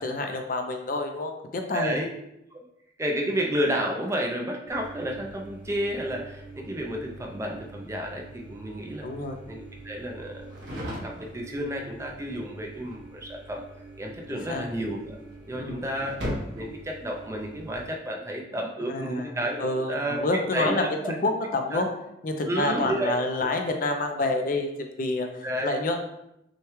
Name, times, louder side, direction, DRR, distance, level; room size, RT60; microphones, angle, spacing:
voice 1, 0.0-2.0 9.0-9.4 14.3-14.6 15.5-15.9 18.9-19.3 19.6-21.9 22.2-25.3 25.6-26.0, left 2 dB, 45° left, 5 dB, 0.5 m, -28 dB
voice 2, 1.7-2.1 3.0-9.1 9.5-10.5 11.0-13.6 14.0-15.2 15.5-16.2 16.5-20.2 20.5-21.1 21.7-21.8 22.5-23.2 25.4-25.8, equal, 15° right, 0 dB, 0.4 m, -31 dB
sound 1, 4.7-17.9, right 1 dB, 65° right, 1.1 m, -41 dB
6.3 x 2.3 x 3.1 m, 0.83 s
head